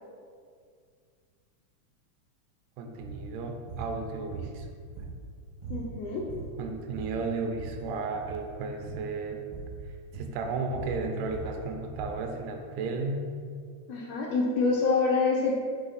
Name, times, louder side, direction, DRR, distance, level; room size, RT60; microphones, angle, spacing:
voice 1, 2.8-4.7 6.6-9.5 9.9-13.2, right 3 dB, 80° right, 4 dB, 1.9 m, -34 dB
sound 1, 2.9-3.2 3.7-3.9 4.3-5.3 5.6-5.9 6.1-6.6 6.9-7.8 8.1-8.4 8.8-9.0 9.5-9.8 10.1-12.2, right 5 dB, 35° right, 0.6 m, -40 dB
voice 2, 5.7-6.2 13.9-15.5, left 4 dB, 75° left, -1 dB, 1.6 m, -26 dB
5.7 x 4.1 x 4.0 m, 2.1 s
omnidirectional pair, 3.4 m